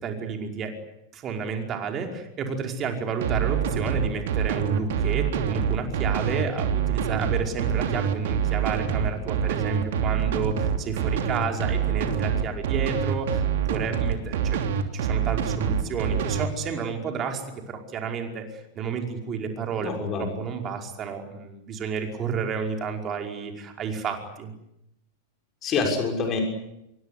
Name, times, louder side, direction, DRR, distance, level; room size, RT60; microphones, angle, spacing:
voice 1, 0.0-0.8 1.1-14.6 14.9-24.5, right 6 dB, 30° right, 3 dB, 5.2 m, -31 dB
sound 1, 3.2-16.5, right 7 dB, 55° right, 2.9 m, -25 dB
voice 2, 19.8-20.3 25.6-26.4, left 4 dB, 30° left, 2 dB, 6.3 m, -26 dB
27.0 x 23.0 x 8.5 m, 0.84 s
figure-of-eight pair, 90°, 0 cm